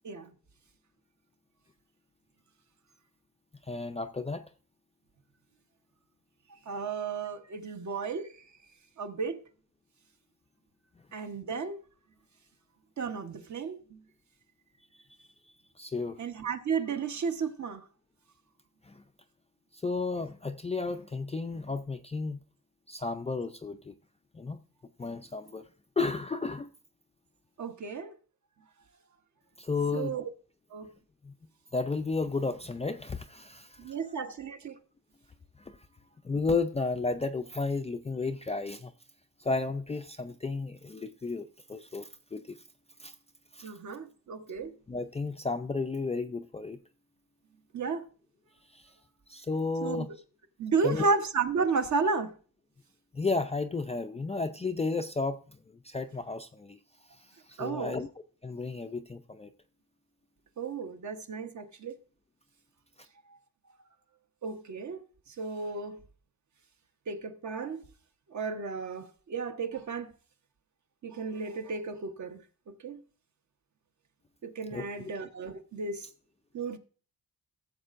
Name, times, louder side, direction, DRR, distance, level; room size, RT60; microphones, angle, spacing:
voice 1, 3.7-4.4 15.8-16.2 18.9-19.0 19.8-22.4 22.9-23.9 24.3-24.6 25.0-25.6 26.0-26.7 29.6-30.2 31.2-31.3 31.7-33.9 35.6-35.8 36.2-38.9 39.4-42.6 43.0-43.1 43.5-43.7 44.9-46.8 48.7-48.8 49.3-50.1 50.8-51.0 53.1-55.4 55.8-56.8 57.5-58.1 58.4-59.5 74.7-75.1, left 3 dB, 20° left, 0.4 m, -33 dB
voice 2, 6.7-8.3 9.0-9.4 11.1-11.8 13.0-14.0 16.2-17.8 27.6-28.1 29.9-30.3 30.7-30.9 33.8-34.8 43.6-44.7 47.7-48.0 49.8-50.1 50.6-52.3 57.6-58.0 60.6-62.0 64.4-65.0 65.4-66.0 67.1-67.8 68.3-70.1 71.0-72.4 72.8-73.0 74.4-76.1 76.5-76.8, right 4 dB, 50° right, 1.0 m, -33 dB
15.5 x 7.3 x 2.5 m
wide cardioid pair, 140°, 36 cm